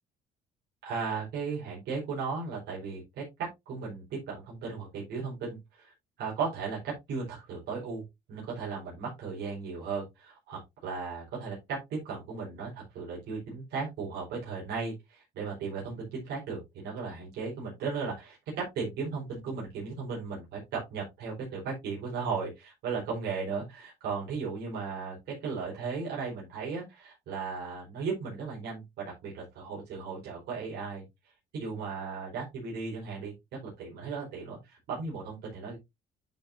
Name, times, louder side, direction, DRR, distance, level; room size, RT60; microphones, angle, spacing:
voice 1, 0.8-3.2 3.7-8.0 8.3-31.0 31.5-33.3 33.8-35.8, right 5 dB, 75° right, -4 dB, 4.5 m, -36 dB
10.0 x 6.3 x 2.7 m, 0.21 s
cardioid pair, 110°, 17 cm